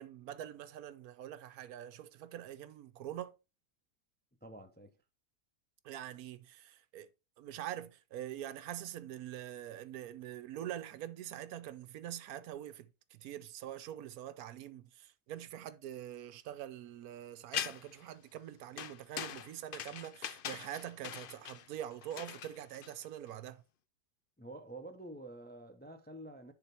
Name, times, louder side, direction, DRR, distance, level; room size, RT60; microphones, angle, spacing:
voice 1, 0.0-3.3 5.8-7.1 7.4-23.6, right 11 dB, 75° right, 1.1 m, -44 dB
voice 2, 4.4-4.9 24.4-26.5, right 1 dB, 10° left, 0.4 m, -48 dB
sound 1, 17.5-18.0 18.8-23.3, left 9 dB, 85° left, 0.4 m, -42 dB
10.0 x 4.0 x 4.4 m
omnidirectional pair, 1.7 m